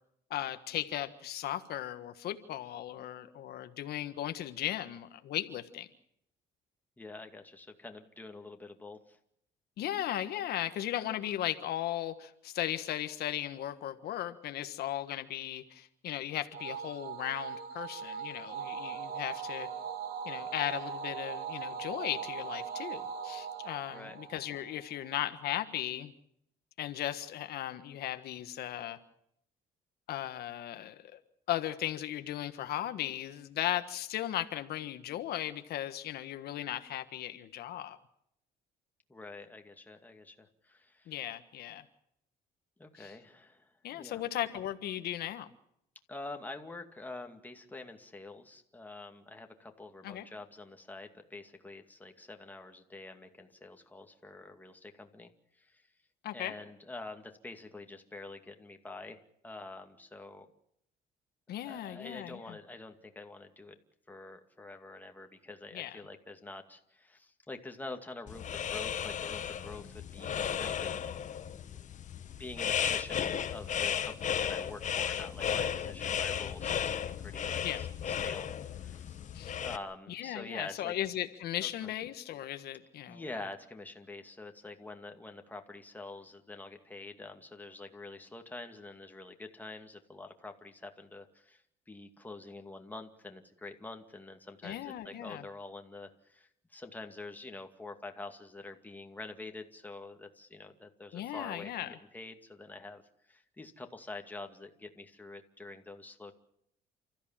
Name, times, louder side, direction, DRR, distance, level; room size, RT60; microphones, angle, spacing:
voice 1, 0.3-5.9 9.8-19.7 20.2-26.1 26.8-29.0 30.1-31.2 31.5-38.0 41.1-41.8 43.0-43.1 43.8-45.5 50.0-50.3 56.2-56.5 61.5-62.5 65.7-66.0 77.6-77.8 79.3-79.6 80.1-83.2 94.6-95.4 101.1-102.0, left 12 dB, 70° left, 9 dB, 1.5 m, -37 dB
voice 2, 7.0-9.2 23.9-24.2 39.1-41.1 42.8-44.2 46.1-55.9 56.3-60.5 61.6-63.7 64.1-71.1 71.5-71.9 72.3-79.2 79.6-80.9 81.6-81.9 83.1-103.0 103.3-106.3, left 2 dB, 10° left, 4 dB, 2.3 m, -47 dB
sound 1, 16.5-25.1, right 7 dB, 70° right, 3.5 m, -40 dB
sound 2, 68.3-79.8, left 8 dB, 45° left, 1.4 m, -34 dB
29.5 x 14.0 x 7.5 m, 0.73 s
cardioid pair, 110°, 17 cm